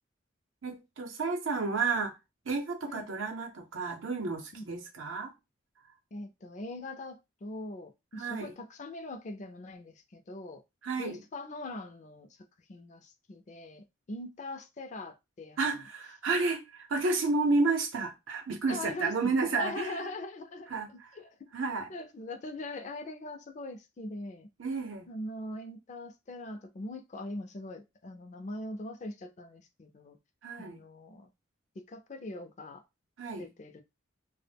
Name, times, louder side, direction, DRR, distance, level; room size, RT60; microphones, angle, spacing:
voice 1, 0.6-2.2 2.5-5.3 8.2-8.5 10.8-11.2 15.6-20.1 20.7-21.1 21.5-21.9 24.6-25.1 30.4-30.8 33.2-33.5, right 3 dB, 90° right, 0.7 m, -31 dB
voice 2, 6.1-10.6 11.0-12.3 12.7-15.6 18.7-21.3 21.9-24.5 25.1-30.2 30.6-31.3 31.8-32.8 33.4-33.8, left 2 dB, 35° left, 0.4 m, -42 dB
2.1 x 2.1 x 3.3 m
head